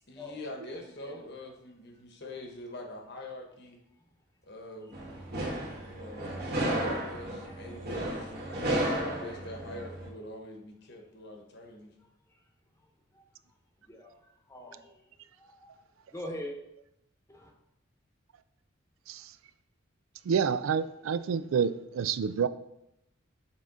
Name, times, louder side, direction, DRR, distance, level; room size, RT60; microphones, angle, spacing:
voice 1, 0.1-3.8 4.5-5.0 5.8-11.9, left 1 dB, 55° left, 1.1 m, -44 dB
sound 1, 4.9-10.1, right 1 dB, 50° right, 1.6 m, -33 dB
voice 2, 14.5-14.9 15.4-15.7 16.1-16.5 17.3-17.5, left 1 dB, 15° left, 0.9 m, -42 dB
voice 3, 20.2-22.5, right 6 dB, 85° right, 0.4 m, -29 dB
7.5 x 3.6 x 3.8 m
head